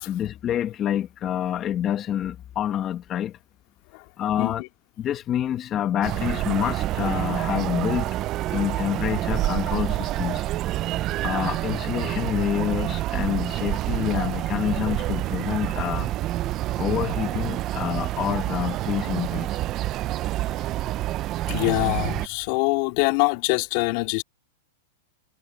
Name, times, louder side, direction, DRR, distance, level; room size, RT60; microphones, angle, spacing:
voice 1, 0.1-3.4 4.2-4.6 5.0-8.2 8.5-10.4 11.2-16.1 16.8-19.5, left 10 dB, 25° left, 1.4 m, -27 dB
voice 2, 4.4-4.7 8.5-8.6 21.5-24.2, left 26 dB, 45° left, 2.4 m, -24 dB
sound 1, 6.0-22.3, right 15 dB, 30° right, 0.6 m, -27 dB
supercardioid pair, 150°, 0 cm